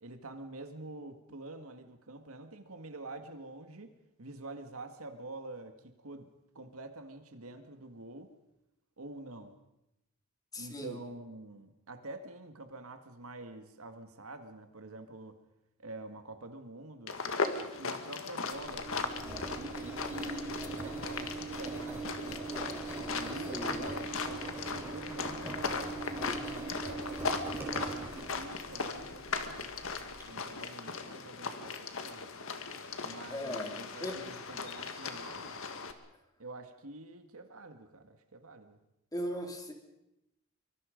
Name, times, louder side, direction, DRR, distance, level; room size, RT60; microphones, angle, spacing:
voice 1, 0.0-6.3 6.6-8.3 9.0-9.6 10.6-15.4 15.8-17.2 17.8-22.5 23.1-29.8 30.3-32.3 33.0-35.6 36.4-38.8, right 2 dB, 80° right, 7 dB, 1.9 m, -47 dB
voice 2, 10.5-11.0 23.5-23.9 33.3-34.2 39.1-39.7, equal, 15° left, 4 dB, 2.7 m, -38 dB
sound 1, 17.1-35.9, left 4 dB, 70° left, 1.8 m, -38 dB
Engine, 18.5-30.2, right 3 dB, 10° right, 5.0 m, -41 dB
24.0 x 24.0 x 5.2 m, 0.89 s
head